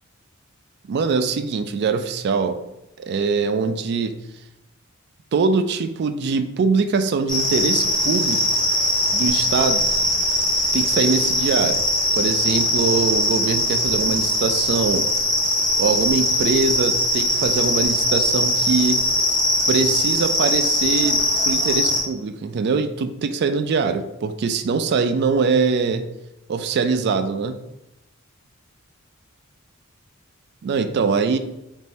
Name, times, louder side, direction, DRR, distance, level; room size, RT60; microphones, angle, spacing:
voice 1, 0.9-2.6 3.0-4.2 5.3-8.6 9.1-9.9 10.7-11.8 12.1-15.1 15.8-19.0 19.7-26.1 26.5-27.6 30.6-31.4, right 4 dB, 50° right, 9 dB, 0.3 m, -22 dB
sound 1, 7.3-22.0, left 1 dB, 5° left, 1.3 m, -21 dB
3.6 x 2.6 x 4.0 m, 0.93 s
head